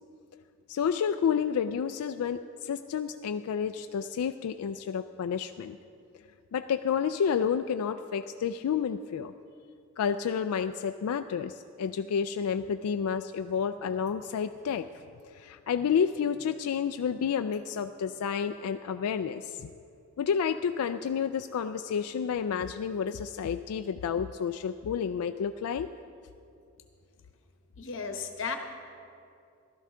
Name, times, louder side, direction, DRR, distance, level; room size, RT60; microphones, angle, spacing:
voice 1, 0.7-5.8 6.5-9.3 10.0-14.9 15.2-19.7 20.2-25.9, left 7 dB, 90° left, 8 dB, 0.3 m, -30 dB
voice 2, 27.8-28.6, left 5 dB, 60° left, 5 dB, 1.0 m, -34 dB
15.5 x 12.5 x 3.7 m, 2.5 s
head